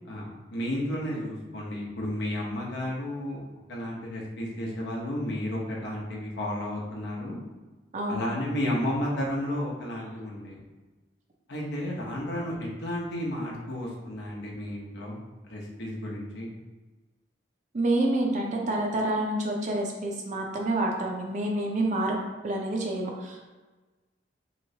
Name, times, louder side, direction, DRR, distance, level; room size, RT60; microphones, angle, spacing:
voice 1, 0.1-3.4 3.7-7.4 8.1-10.6 11.5-15.2 15.5-16.5, left 1 dB, 65° left, -3 dB, 0.8 m, -32 dB
voice 2, 17.7-22.1 22.4-23.5, right 1 dB, 40° right, 1 dB, 0.5 m, -28 dB
3.1 x 3.0 x 2.7 m, 1.2 s
head